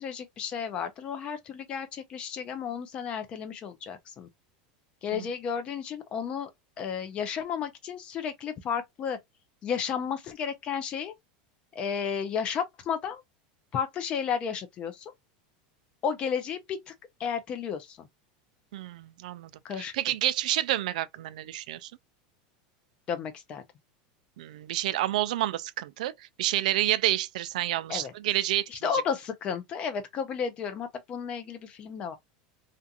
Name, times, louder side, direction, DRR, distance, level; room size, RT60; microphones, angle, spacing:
voice 1, 0.0-4.3 5.0-6.5 6.8-9.2 9.6-11.1 11.8-13.2 13.7-15.1 16.0-16.9 17.2-18.1 19.6-19.9 23.1-23.6 27.9-28.1 28.7-32.2, left 7 dB, 25° left, 0.4 m, -32 dB
voice 2, 18.7-21.9 24.4-29.0, right 14 dB, 80° right, 0.3 m, -29 dB
2.5 x 2.3 x 2.6 m
supercardioid pair, 170°, 4 cm